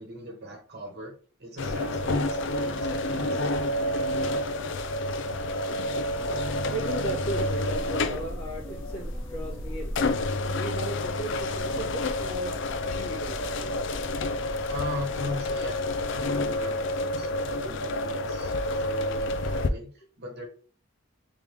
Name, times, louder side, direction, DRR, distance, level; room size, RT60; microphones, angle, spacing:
voice 1, 0.0-3.5 14.7-20.4, left 1 dB, 45° right, 1.2 m, -39 dB
sound 1, 1.6-19.7, left 2 dB, 55° left, 0.4 m, -29 dB
sound 2, 6.0-16.6, equal, 15° left, 0.9 m, -40 dB
voice 2, 6.4-14.7 17.6-17.7, right 2 dB, 85° left, 1.5 m, -37 dB
3.6 x 3.4 x 3.3 m
head